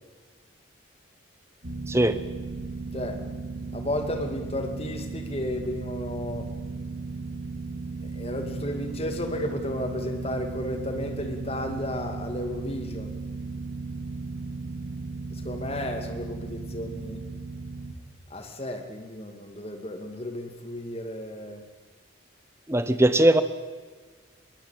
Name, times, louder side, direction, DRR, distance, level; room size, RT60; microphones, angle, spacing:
sound 1, 1.6-17.9, right 3 dB, 90° right, 2.6 m, -36 dB
voice 1, 1.9-2.2 22.7-23.4, right 1 dB, 15° right, 12 dB, 0.9 m, -20 dB
voice 2, 3.7-6.5 8.0-13.2 15.4-17.2 18.3-21.6, left 1 dB, 30° left, 5 dB, 2.4 m, -33 dB
21.5 x 18.5 x 9.1 m, 1.4 s
head